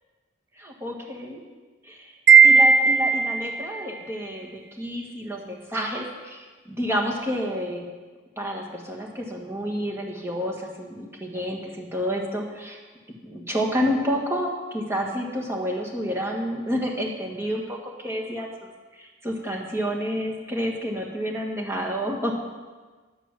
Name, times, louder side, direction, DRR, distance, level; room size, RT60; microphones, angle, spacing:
voice 1, 0.6-1.4 1.8-2.1 2.4-7.9 8.4-12.8 13.2-18.7 19.0-22.4, equal, 15° right, -1 dB, 1.6 m, -29 dB
Wind chime, 2.3-3.7, right 5 dB, 55° right, 0.4 m, -15 dB
10.0 x 8.2 x 7.3 m, 1.4 s
head